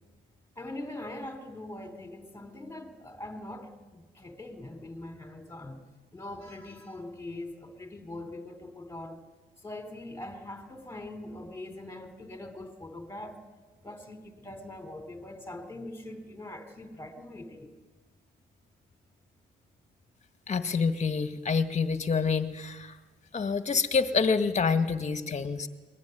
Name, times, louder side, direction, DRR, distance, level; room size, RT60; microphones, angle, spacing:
voice 1, 0.6-5.9 6.1-9.2 9.6-13.4 13.8-17.7, left 1 dB, 10° left, 6 dB, 3.9 m, -42 dB
voice 2, 20.5-23.0 23.3-25.7, left 5 dB, 35° left, 9 dB, 1.9 m, -27 dB
23.0 x 20.5 x 9.5 m, 1.3 s
cardioid pair, 90°, 20 cm